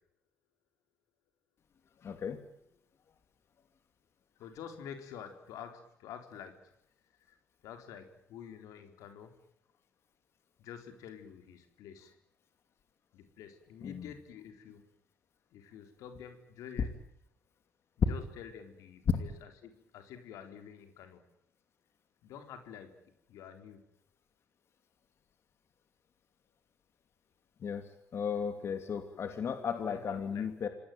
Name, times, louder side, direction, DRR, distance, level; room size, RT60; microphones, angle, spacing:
voice 1, 2.0-2.4 13.8-14.0 19.1-19.2 27.6-30.7, left 7 dB, 50° left, 7 dB, 2.8 m, -34 dB
voice 2, 4.4-6.7 7.2-7.4 7.6-9.3 10.6-12.2 13.1-14.8 15.5-16.9 18.1-21.3 22.2-23.0 23.3-23.8 29.8-30.5, left 8 dB, 85° left, 6 dB, 4.2 m, -48 dB
26.5 x 19.0 x 9.3 m, 0.76 s
cardioid pair, 90°, 5 cm